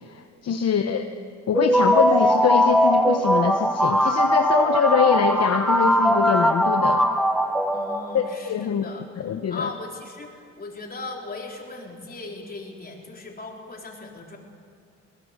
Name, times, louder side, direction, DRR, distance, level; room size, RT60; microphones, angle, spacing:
voice 1, 0.1-1.0 1.5-7.1 8.1-8.9 9.2-9.7, left 7 dB, 55° left, 6 dB, 1.1 m, -24 dB
voice 2, 0.6-1.0 7.7-9.1 9.5-14.4, left 3 dB, 30° left, 0 dB, 4.1 m, -38 dB
sound 1, 1.5-8.4, equal, ahead, 1.0 m, -20 dB
22.5 x 18.5 x 6.7 m, 2.3 s
cardioid pair, 90°, 30 cm